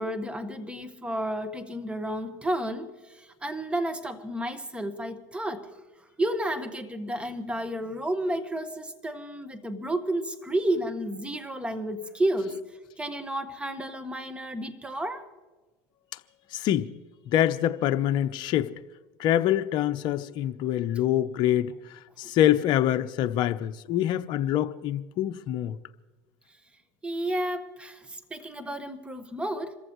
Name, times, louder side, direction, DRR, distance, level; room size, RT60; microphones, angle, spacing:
voice 1, 0.0-5.7 6.2-12.6 13.0-15.3 27.0-29.8, right 1 dB, 10° right, 1.6 m, -31 dB
voice 2, 16.5-16.9 17.3-18.7 19.2-21.7 22.2-25.8, left 12 dB, 55° left, 0.8 m, -25 dB
27.0 x 14.5 x 3.1 m
supercardioid pair, 95°, 9 cm